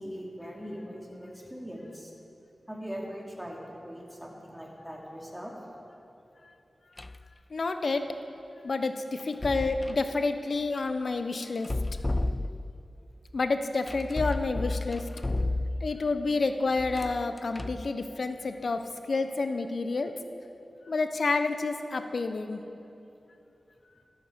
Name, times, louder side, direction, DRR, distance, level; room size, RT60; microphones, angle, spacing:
voice 1, 0.0-2.1 2.7-5.5, equal, 10° right, -2 dB, 2.8 m, -41 dB
sound 1, 7.0-7.3 9.2-10.1 11.6-12.9 13.9-16.1 16.8-17.9, left 2 dB, 25° left, 0.4 m, -32 dB
voice 2, 7.5-8.0 8.6-11.7 13.3-15.1 15.8-20.1 20.9-22.6, left 3 dB, 65° left, 8 dB, 0.9 m, -29 dB
13.5 x 13.0 x 5.7 m, 2.9 s
wide cardioid pair, 65°, 0 cm